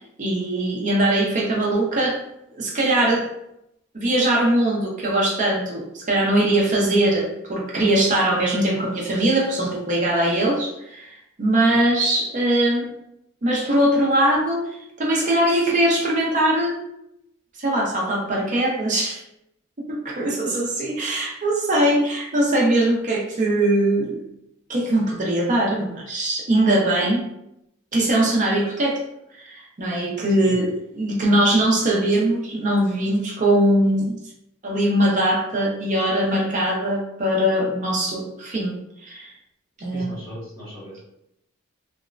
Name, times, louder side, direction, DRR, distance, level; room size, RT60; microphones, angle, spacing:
voice 1, 0.2-2.2 2.5-3.3 3.9-11.1 11.4-12.9 13.4-16.8 17.6-19.2 19.9-24.2 24.7-27.2 27.9-29.0 29.3-30.7 31.0-34.2 34.6-38.7 39.0-39.3 39.8-40.1, right 1 dB, 35° right, -3 dB, 0.5 m, -21 dB
voice 2, 30.2-30.6 39.9-41.0, equal, 45° left, -8 dB, 1.5 m, -38 dB
3.0 x 2.1 x 2.4 m, 0.81 s
head